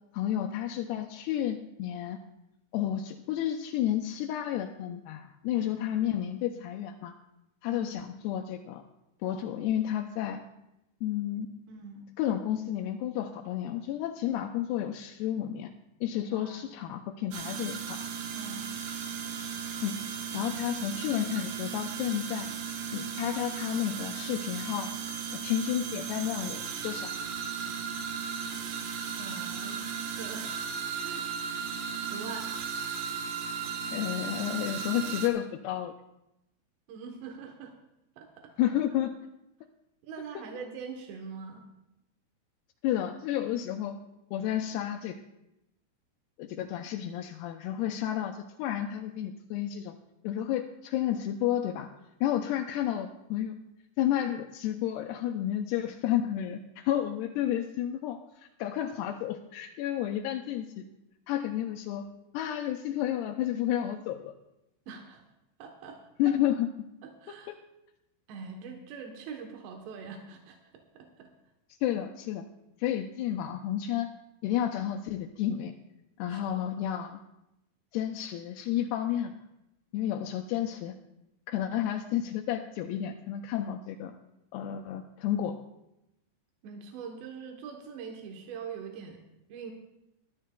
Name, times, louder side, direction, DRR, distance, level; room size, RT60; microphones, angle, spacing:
voice 1, 0.1-2.2 2.7-7.1 7.6-8.8 9.2-10.4 11.0-11.5 12.2-15.7 16.0-18.0 19.8-20.0 20.3-22.5 22.9-24.9 25.3-27.1 33.9-35.9 38.6-39.1 42.8-44.0 44.3-45.2 46.4-50.0 50.2-51.9 52.2-53.5 54.0-60.8 61.3-62.1 62.3-64.3 66.2-66.7 67.5-67.6 71.8-72.4 72.8-74.1 74.4-75.7 76.2-77.2 77.9-79.3 79.9-81.0 81.5-84.2 84.5-85.6, left 11 dB, 85° left, 2 dB, 2.6 m, -31 dB
voice 2, 5.5-6.0 7.7-8.0 11.7-12.1 16.3-16.7 18.3-18.7 29.2-29.8 30.2-30.5 31.0-31.3 31.9-32.5 36.9-37.7 38.2-38.5 40.0-41.7 64.9-65.2 65.6-66.4 67.0-67.5 68.3-71.3 76.3-76.9 86.6-89.2 89.5-89.7, right 5 dB, 90° right, 3 dB, 3.3 m, -43 dB
sound 1, 17.3-35.3, right 7 dB, 70° right, 2.7 m, -36 dB
22.0 x 12.0 x 2.2 m, 0.89 s
omnidirectional pair, 4.8 m